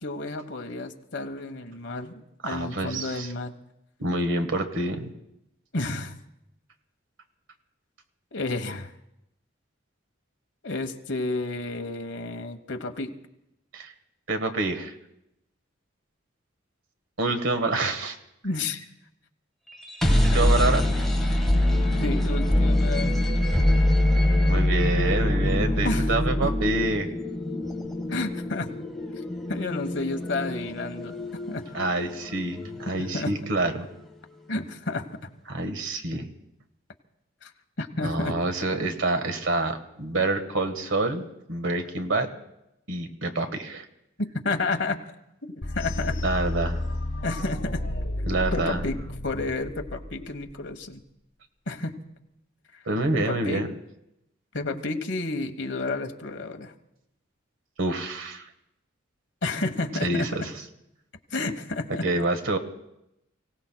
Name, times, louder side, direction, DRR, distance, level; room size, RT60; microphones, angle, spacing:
voice 1, 0.0-3.5 5.7-6.1 8.3-8.9 10.6-13.1 18.4-18.9 20.6-20.7 21.5-21.7 22.0-23.2 25.8-26.1 26.4-26.5 28.1-28.7 29.5-31.1 31.5-31.6 33.0-33.3 34.5-35.1 37.4-37.5 37.8-38.4 44.2-45.0 45.7-46.2 47.2-47.8 48.5-49.0 49.2-51.0 51.7-52.0 52.7-52.8 53.1-53.6 54.5-56.7 59.4-60.5 61.3-62.1, left 2 dB, 65° left, 5 dB, 1.2 m, -31 dB
voice 2, 2.4-3.3 4.0-5.1 13.7-13.9 14.3-14.9 17.2-18.2 20.2-20.8 24.5-27.1 31.7-33.9 35.5-36.3 38.0-42.3 42.9-43.8 46.2-46.8 48.3-48.8 52.9-53.7 57.8-58.5 60.0-60.4 61.9-62.6, right 2 dB, 80° right, 6 dB, 1.5 m, -27 dB
sound 1, 19.7-33.6, left 1 dB, ahead, 1.5 m, -24 dB
Bass guitar, 21.6-27.9, left 1 dB, 40° left, 4.3 m, -41 dB
sound 2, 45.6-50.5, left 1 dB, 85° left, 1.6 m, -31 dB
29.5 x 17.0 x 2.3 m, 0.86 s
head